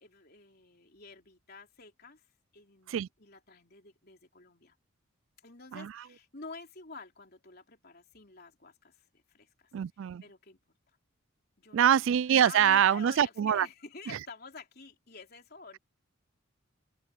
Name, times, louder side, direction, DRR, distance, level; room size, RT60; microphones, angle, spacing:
voice 1, 0.0-2.3 2.5-4.8 5.4-9.7 10.2-10.6 11.6-12.0 12.4-15.8, left 4 dB, 45° left, 3.7 m, -49 dB
voice 2, 9.7-10.2 11.7-13.7 14.1-14.2, right 9 dB, 65° right, 0.3 m, -25 dB
open air
head